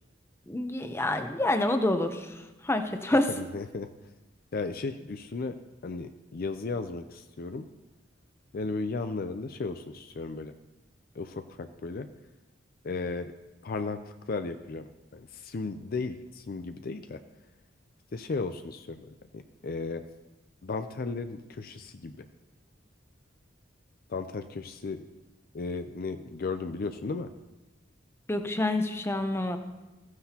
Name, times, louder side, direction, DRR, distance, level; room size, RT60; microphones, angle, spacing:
voice 1, 0.5-2.3 2.6-3.3 28.3-29.6, left 1 dB, 15° left, 7 dB, 0.7 m, -27 dB
voice 2, 3.3-3.9 4.5-5.5 5.8-7.7 8.5-10.5 11.2-12.1 12.8-13.3 13.6-17.2 18.1-20.0 20.6-22.2 24.1-25.0 25.5-27.3, left 3 dB, 50° left, 9 dB, 0.5 m, -35 dB
15.0 x 9.5 x 2.9 m, 1.1 s
head